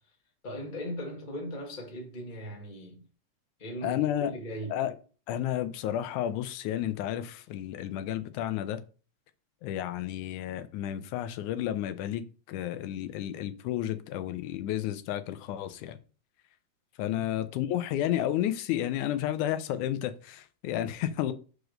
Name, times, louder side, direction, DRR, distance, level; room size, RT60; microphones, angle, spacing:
voice 1, 0.4-3.0 3.6-4.8 17.0-17.4, equal, 25° left, 1.2 m, -39 dB
voice 2, 3.8-4.3 4.7-4.9 5.3-8.8 9.6-16.0 17.0-21.3, left 11 dB, 85° left, 2.2 m, -31 dB
5.2 x 4.9 x 6.4 m
omnidirectional pair, 3.4 m